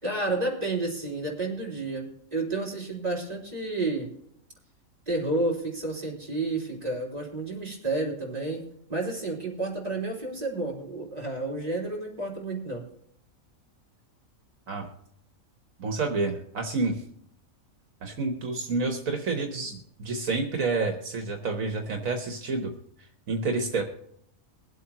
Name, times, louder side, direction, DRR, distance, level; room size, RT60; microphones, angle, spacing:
voice 1, 0.0-4.1 5.1-8.6 8.9-12.8, right 2 dB, 30° right, -3 dB, 3.7 m, -30 dB
voice 2, 15.8-17.0 18.0-22.7 23.3-23.8, right 3 dB, 75° right, 3 dB, 1.6 m, -29 dB
23.0 x 8.0 x 3.0 m, 0.69 s
omnidirectional pair, 1.4 m